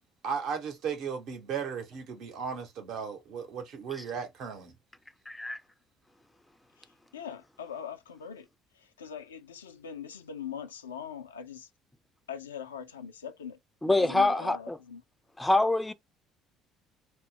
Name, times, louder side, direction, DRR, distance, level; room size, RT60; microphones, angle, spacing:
voice 1, 0.2-4.7, right 6 dB, 60° right, 0.8 m, -36 dB
voice 2, 5.3-5.6 13.8-14.8 15.4-15.9, left 2 dB, 10° left, 0.4 m, -25 dB
voice 3, 6.8-8.5 8.7-11.7 12.3-13.6 14.0-15.0, left 8 dB, 80° left, 0.3 m, -41 dB
2.2 x 2.0 x 3.6 m
figure-of-eight pair, 55°, 0 cm